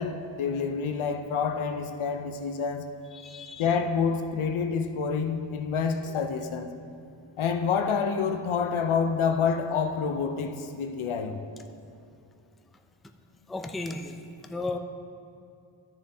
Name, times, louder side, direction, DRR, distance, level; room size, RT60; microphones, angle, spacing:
voice 1, 0.0-2.9 3.6-6.7 7.4-11.4, left 6 dB, 85° left, 7 dB, 0.6 m, -28 dB
voice 2, 3.1-3.7 13.5-14.2 14.5-14.8, left 2 dB, ahead, 5 dB, 0.3 m, -34 dB
13.0 x 6.7 x 2.7 m, 2.5 s
wide cardioid pair, 100°, 48 cm